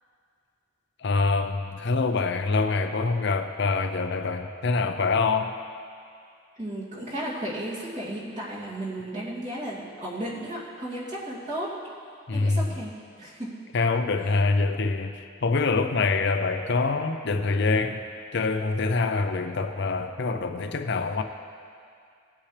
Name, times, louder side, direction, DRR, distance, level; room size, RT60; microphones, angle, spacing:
voice 1, 1.0-5.5 12.3-12.7 13.7-18.0 18.3-21.2, left 3 dB, 60° left, 7 dB, 0.6 m, -25 dB
voice 2, 6.6-11.7 12.3-13.5, right 1 dB, 40° right, -8 dB, 2.6 m, -34 dB
18.0 x 8.6 x 3.3 m, 2.3 s
head